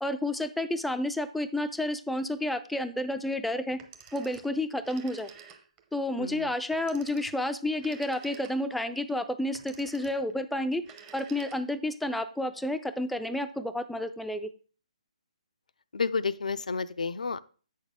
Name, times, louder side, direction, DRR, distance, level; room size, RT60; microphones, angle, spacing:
voice 1, 0.0-3.8 4.1-5.3 5.9-10.8 11.1-14.5, left 1 dB, ahead, 8 dB, 0.3 m, -30 dB
Telephone, 3.7-5.9 6.7-8.9 9.5-10.3 10.8-11.9, right 7 dB, 20° right, 0.8 m, -51 dB
voice 2, 6.2-6.5 15.9-17.4, left 5 dB, 80° left, 14 dB, 0.4 m, -31 dB
8.0 x 6.5 x 3.5 m, 0.38 s
figure-of-eight pair, 145°, 4 cm